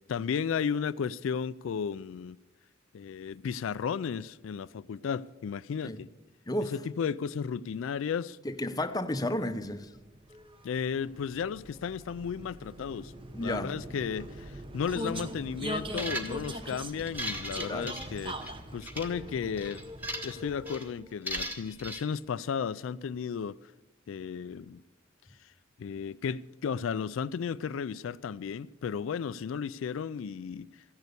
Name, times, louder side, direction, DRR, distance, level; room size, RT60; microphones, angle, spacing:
voice 1, 0.0-2.4 2.9-6.1 6.7-8.4 10.6-13.1 13.4-19.8 20.2-23.6 24.1-24.8 25.4-25.5 25.8-30.7, left 6 dB, 80° left, 0.3 m, -34 dB
voice 2, 8.4-9.9 13.3-13.8 17.7-17.9, left 1 dB, 20° left, 0.7 m, -32 dB
Vehicle, 9.6-21.1, equal, 25° right, 1.0 m, -41 dB
sound 1, 15.9-16.6 17.0-18.5 18.8-19.1 19.6-20.4 20.7-20.9 21.3-22.0, right 1 dB, 10° right, 1.6 m, -37 dB
14.5 x 10.5 x 6.8 m
head